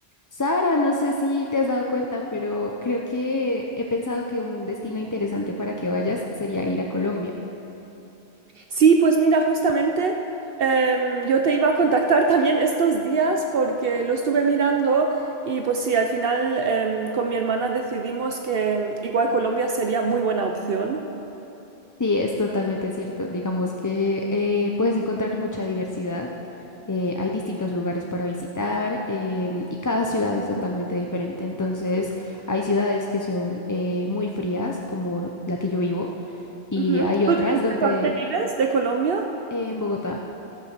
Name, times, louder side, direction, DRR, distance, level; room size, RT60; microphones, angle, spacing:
voice 1, 0.3-7.3 22.0-26.3 26.9-36.1 36.7-38.1 39.5-40.2, left 2 dB, 25° left, 0 dB, 0.5 m, -26 dB
voice 2, 8.7-10.2 10.6-15.2 15.5-21.0 36.8-39.3, right 4 dB, 65° right, 3 dB, 0.8 m, -22 dB
12.5 x 8.3 x 6.6 m, 3.0 s
omnidirectional pair, 1.1 m